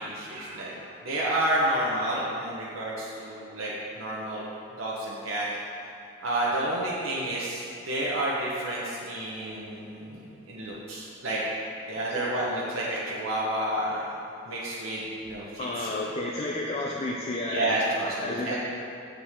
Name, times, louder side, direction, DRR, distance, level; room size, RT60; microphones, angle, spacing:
voice 1, 0.0-4.4 4.8-5.5 6.2-11.4 11.9-14.0 14.5-16.1 17.4-18.6, right 1 dB, 80° right, -6 dB, 1.1 m, -30 dB
voice 2, 15.6-17.8 18.2-18.6, left 2 dB, 30° left, -2 dB, 0.4 m, -31 dB
7.0 x 6.8 x 3.6 m, 2.7 s
head